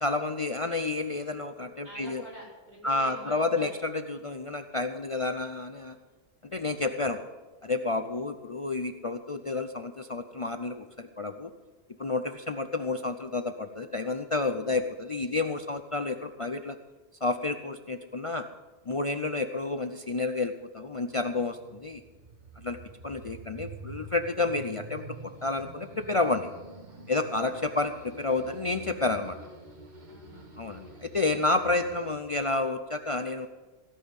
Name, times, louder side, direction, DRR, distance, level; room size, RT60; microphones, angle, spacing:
voice 1, 0.0-2.2 2.8-6.0 6.4-7.2 7.6-11.5 12.0-16.8 17.2-18.4 18.9-22.0 22.6-22.8 23.0-26.5 27.1-29.4 30.6-33.5, left 3 dB, 40° left, 7 dB, 0.5 m, -30 dB
voice 2, 1.8-3.7 27.4-27.5 30.0-30.5, right 1 dB, 70° right, -7 dB, 6.2 m, -46 dB
sound 1, 20.8-32.1, right 3 dB, 40° right, 1.6 m, -47 dB
16.5 x 5.6 x 9.6 m, 1.2 s
omnidirectional pair, 1.2 m